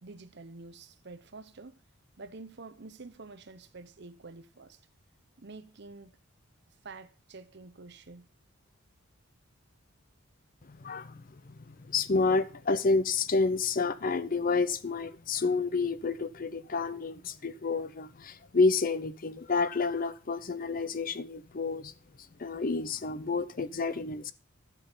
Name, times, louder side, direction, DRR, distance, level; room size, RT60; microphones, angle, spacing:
voice 1, 0.0-1.8 2.2-4.8 5.4-6.1 6.8-8.3, right 3 dB, 55° right, 0.8 m, -48 dB
voice 2, 10.6-21.9 22.4-24.3, left 4 dB, 40° left, 0.6 m, -29 dB
12.0 x 6.2 x 5.5 m
head